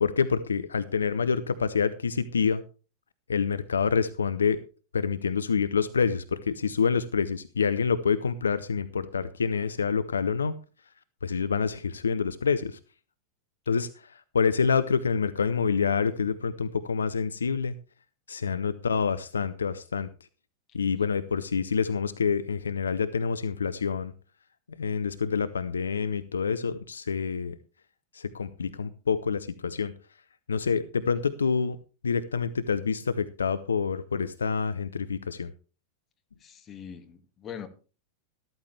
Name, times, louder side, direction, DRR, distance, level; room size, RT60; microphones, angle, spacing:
voice 1, 0.0-2.6 3.3-4.6 4.9-10.5 11.2-12.8 13.7-17.7 18.3-20.1 20.7-24.1 24.8-27.6 28.1-29.9 30.5-31.8 32.0-35.5, left 6 dB, 70° left, 14 dB, 0.6 m, -27 dB
voice 2, 36.4-37.7, left 8 dB, 25° left, 7 dB, 1.9 m, -42 dB
13.5 x 13.0 x 3.3 m, 0.36 s
figure-of-eight pair, 90°, 0 cm